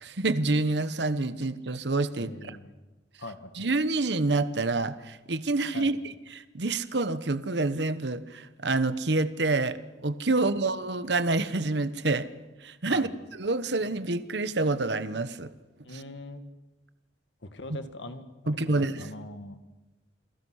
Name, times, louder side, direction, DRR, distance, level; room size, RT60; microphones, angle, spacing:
voice 1, 0.0-2.6 3.6-6.0 6.3-9.8 10.0-12.3 12.6-13.1 13.4-15.5 15.9-16.0 18.5-19.1, right 2 dB, 65° right, 12 dB, 1.2 m, -27 dB
voice 2, 2.2-2.7 3.2-3.7 5.7-5.9 10.3-10.4 12.9-13.1 15.8-16.4 17.4-19.6, left 2 dB, 75° left, 8 dB, 2.0 m, -42 dB
29.0 x 21.5 x 6.5 m, 1.1 s
head